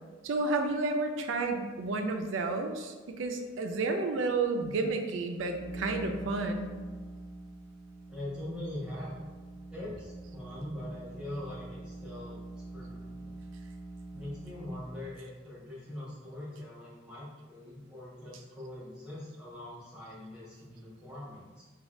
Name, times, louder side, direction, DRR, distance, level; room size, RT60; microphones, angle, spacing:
voice 1, 0.2-6.7, right 3 dB, 80° right, 5 dB, 0.4 m, -31 dB
sound 1, 5.2-15.1, right 2 dB, 75° left, 0.6 m, -45 dB
voice 2, 8.1-9.2 9.7-13.3 14.1-21.6, left 1 dB, 5° right, -11 dB, 1.0 m, -42 dB
3.0 x 2.3 x 2.6 m, 1.3 s
head